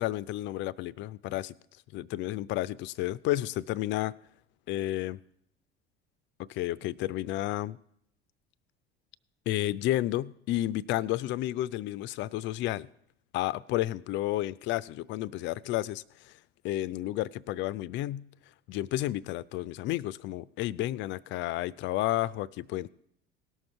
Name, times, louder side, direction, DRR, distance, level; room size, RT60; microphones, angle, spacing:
voice 1, 0.0-1.5 1.9-4.1 4.7-5.2 6.5-7.8 9.5-12.9 13.3-16.3 16.6-18.2 18.7-22.9, left 15 dB, 35° left, 20 dB, 0.4 m, -31 dB
17.5 x 6.3 x 4.5 m, 0.72 s
figure-of-eight pair, 65°, 32 cm